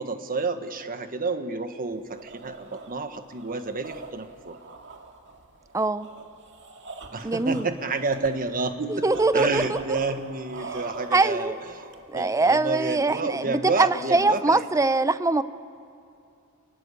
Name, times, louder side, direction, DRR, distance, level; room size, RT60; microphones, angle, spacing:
voice 1, 0.0-4.6 7.1-9.1 9.3-11.8 12.1-14.6, right 3 dB, 40° right, 8 dB, 1.4 m, -29 dB
sound 1, 1.9-12.3, right 3 dB, 55° right, 2.2 m, -43 dB
voice 2, 5.7-6.1 7.2-7.7 8.9-9.8 11.1-11.5 12.1-15.4, right 3 dB, 15° right, 13 dB, 0.6 m, -23 dB
28.0 x 19.5 x 8.4 m, 2.6 s
head